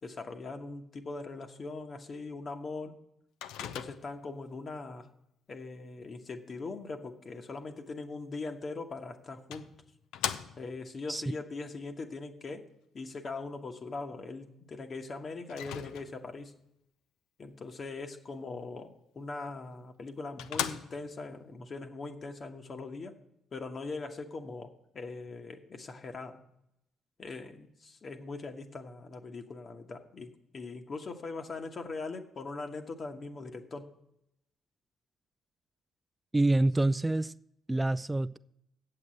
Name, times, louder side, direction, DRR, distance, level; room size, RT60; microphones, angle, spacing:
voice 1, 0.0-2.9 3.6-5.1 5.5-9.7 10.6-12.7 12.9-16.5 17.4-23.1 23.5-26.4 27.2-33.9, left 3 dB, 45° left, 1.2 m, -41 dB
Microwave oven, 3.4-4.3 8.7-8.8 9.5-10.9 15.5-16.4 19.5-19.6 20.0-20.1 20.4-21.3, left 10 dB, 75° left, 0.5 m, -38 dB
voice 2, 36.3-37.3 37.7-38.4, right 2 dB, 15° right, 0.3 m, -26 dB
7.9 x 7.8 x 7.7 m
hypercardioid pair, 45°, 0 cm